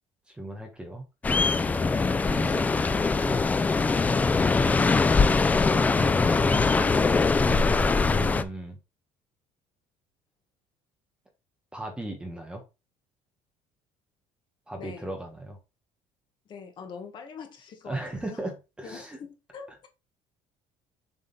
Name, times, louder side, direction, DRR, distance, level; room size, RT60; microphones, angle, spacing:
voice 1, 0.3-1.0 1.7-3.4 5.7-7.0 8.0-8.8 11.7-12.6 14.7-15.6 17.8-19.2, right 2 dB, 5° right, 1.1 m, -37 dB
sound 1, 1.2-8.4, left 4 dB, 10° left, 0.3 m, -22 dB
voice 2, 4.5-5.1 14.8-15.1 16.4-18.0 18.3-18.4 18.8-19.9, left 6 dB, 35° left, 1.5 m, -43 dB
7.2 x 3.7 x 4.0 m
cardioid pair, 170°, 13 cm